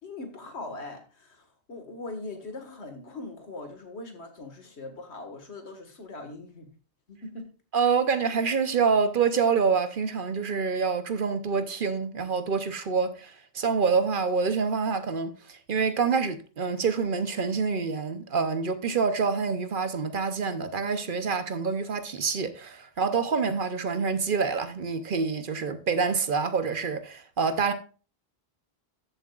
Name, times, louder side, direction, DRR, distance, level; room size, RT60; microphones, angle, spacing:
voice 1, 0.0-6.7 7.1-7.5, left 2 dB, 80° left, 2.0 m, -41 dB
voice 2, 7.7-27.7, right 5 dB, 55° right, 0.9 m, -26 dB
13.5 x 7.5 x 2.4 m
omnidirectional pair, 1.1 m